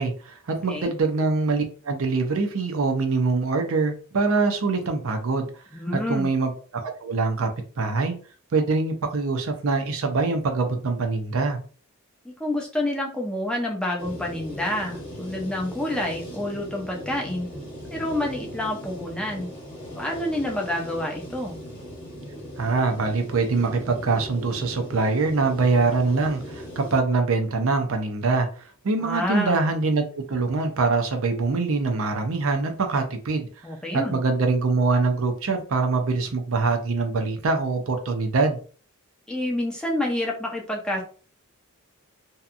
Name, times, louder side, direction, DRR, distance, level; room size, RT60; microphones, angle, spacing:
voice 1, 0.0-5.5 5.9-8.2 8.5-11.6 22.6-33.5 33.9-38.6, right 3 dB, 65° right, 0.5 m, -24 dB
voice 2, 5.7-6.3 12.2-17.5 17.9-19.5 20.0-21.6 29.0-29.6 33.6-34.2 39.3-41.0, left 1 dB, 5° left, 0.5 m, -28 dB
sound 1, 14.0-27.0, equal, 25° left, 1.0 m, -39 dB
2.7 x 2.2 x 2.4 m
head